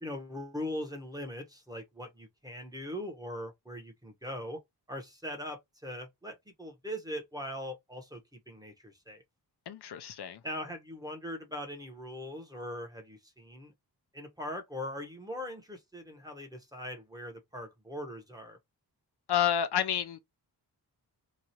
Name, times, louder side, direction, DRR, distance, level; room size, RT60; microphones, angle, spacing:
voice 1, 0.0-4.6 4.9-9.2 10.4-13.7 14.1-18.6, left 1 dB, 10° right, 0.9 m, -41 dB
voice 2, 9.7-10.4 19.3-20.2, left 9 dB, 70° left, 0.5 m, -29 dB
3.0 x 2.4 x 2.7 m
cardioid pair, 70°, 41 cm